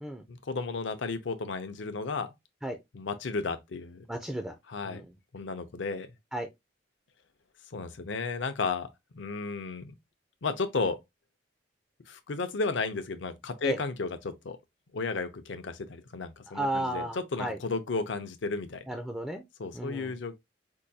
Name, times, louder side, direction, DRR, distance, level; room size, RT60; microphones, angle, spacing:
voice 1, 0.3-2.3 2.9-4.0 4.7-5.0 5.3-6.1 7.7-8.9 9.1-9.9 10.4-11.0 12.1-14.6 14.9-18.9 19.6-20.4, left 4 dB, 70° left, 0.6 m, -33 dB
voice 2, 4.1-4.5 4.9-5.1 6.3-6.5 13.6-13.8 16.5-17.6 18.9-19.4 19.7-20.1, right 1 dB, 5° right, 0.4 m, -33 dB
4.5 x 2.2 x 2.7 m
head